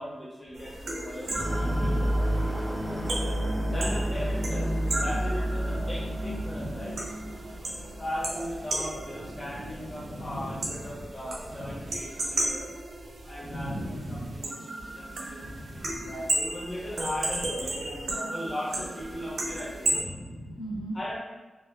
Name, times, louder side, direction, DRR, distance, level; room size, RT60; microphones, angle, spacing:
voice 1, 0.0-1.9 2.4-3.1 3.7-4.7 5.0-7.0 8.0-12.7 13.3-20.1 20.9-21.2, equal, 30° left, -7 dB, 0.7 m, -38 dB
sound 1, 0.5-20.0, right 1 dB, 90° right, 0.4 m, -35 dB
sound 2, 1.4-9.7 10.0-10.1, equal, 5° right, 0.3 m, -30 dB
voice 2, 1.6-2.5 3.6-4.2 6.4-6.9 9.2-11.1 11.5-11.9 13.4-14.4 15.4-16.1 17.8-18.0 19.9-21.0, equal, 80° left, -6 dB, 0.7 m, -38 dB
3.2 x 2.2 x 2.2 m, 1.2 s
wide cardioid pair, 170°, 0 cm